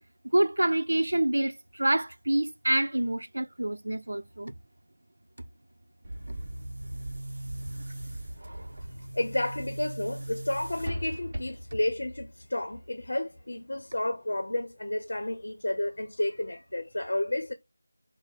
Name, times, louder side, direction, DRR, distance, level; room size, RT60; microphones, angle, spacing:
voice 1, 0.3-4.5 8.4-8.7, right 1 dB, 85° right, 0.6 m, -27 dB
Boom, 6.0-11.8, right 1 dB, 15° right, 1.9 m, -38 dB
voice 2, 9.0-17.5, left 1 dB, 60° left, 0.7 m, -31 dB
6.1 x 2.1 x 4.0 m
figure-of-eight pair, 180°, 0 cm